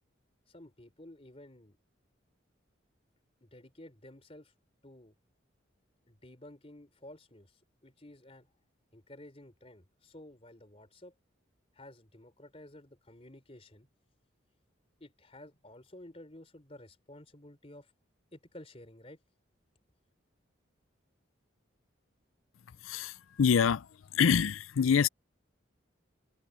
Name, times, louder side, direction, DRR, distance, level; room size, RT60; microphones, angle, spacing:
voice 1, 0.5-1.8 3.4-4.5 4.8-5.1 6.1-8.5 8.9-11.1 11.7-13.9 15.0-17.9 18.3-19.2, left 1 dB, 30° left, 3.8 m, -52 dB
voice 2, 22.8-23.9 24.1-25.1, left 7 dB, 85° left, 0.5 m, -26 dB
head